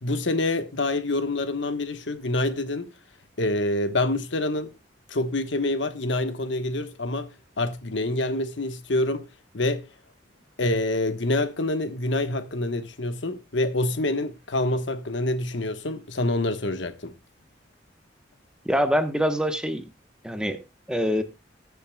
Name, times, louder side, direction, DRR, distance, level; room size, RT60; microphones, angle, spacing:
voice 1, 0.0-2.9 3.4-4.7 5.1-7.3 7.6-9.3 9.5-9.9 10.6-17.1, left 2 dB, 85° left, 1.2 m, -26 dB
voice 2, 18.7-19.8 20.2-20.6 20.9-21.2, equal, 5° right, 1.0 m, -24 dB
20.0 x 7.1 x 2.3 m
head